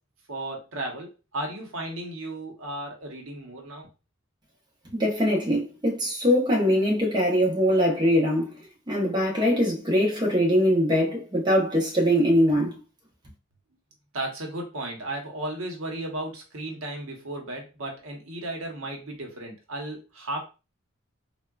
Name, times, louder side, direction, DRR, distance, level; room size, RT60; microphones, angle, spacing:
voice 1, 0.3-3.9 14.1-20.4, right 1 dB, 90° right, 0.9 m, -34 dB
voice 2, 4.9-8.6 8.9-12.8, equal, 20° right, 0.8 m, -22 dB
3.6 x 2.2 x 2.3 m
head